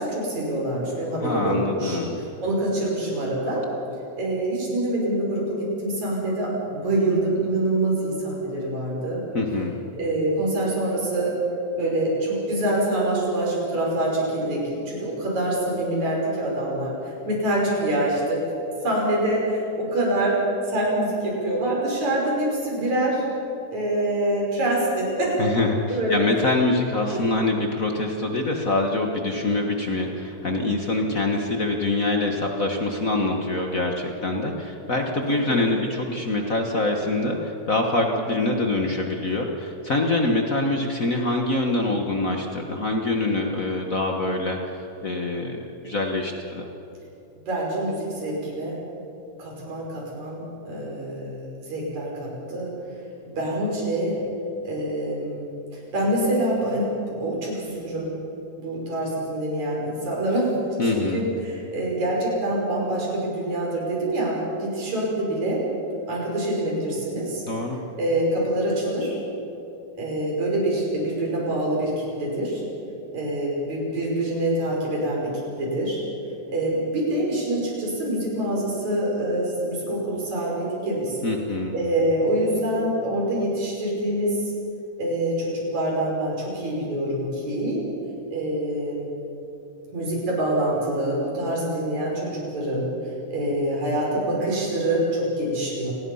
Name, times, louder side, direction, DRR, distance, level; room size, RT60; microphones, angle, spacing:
voice 1, 0.0-3.6 4.2-9.2 10.0-11.3 11.8-16.9 17.3-18.4 18.8-20.4 20.7-23.2 23.7-25.4 25.9-26.2 27.1-27.2 35.3-35.8 47.5-48.8 49.4-52.7 53.2-54.2 54.6-55.5 55.7-58.2 58.6-60.5 60.8-65.6 66.1-67.4 68.0-69.2 70.0-72.6 73.1-76.0 76.5-81.2 81.7-84.5 85.0-87.9 88.3-89.1 89.9-92.9 93.3-95.9, right 1 dB, 55° right, -3 dB, 7.0 m, -25 dB
voice 2, 1.2-2.1 9.3-9.7 25.4-46.7 60.8-61.2 67.5-67.8 81.2-81.8, left 2 dB, 65° left, 2 dB, 0.8 m, -25 dB
28.5 x 19.5 x 5.6 m, 2.9 s
omnidirectional pair, 3.9 m